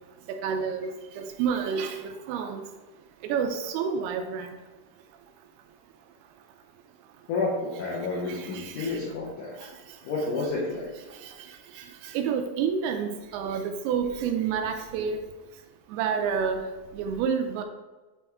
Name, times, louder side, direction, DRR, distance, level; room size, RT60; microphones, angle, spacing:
voice 1, 0.3-0.9 1.2-2.7 3.2-4.6 8.3-9.0 9.6-9.7 11.1-15.2 15.9-17.6, right 6 dB, 85° right, 5 dB, 2.3 m, -29 dB
voice 2, 7.3-9.7 10.0-10.9, left 3 dB, 75° left, -5 dB, 1.8 m, -30 dB
9.1 x 3.1 x 3.5 m, 1.2 s
omnidirectional pair, 4.9 m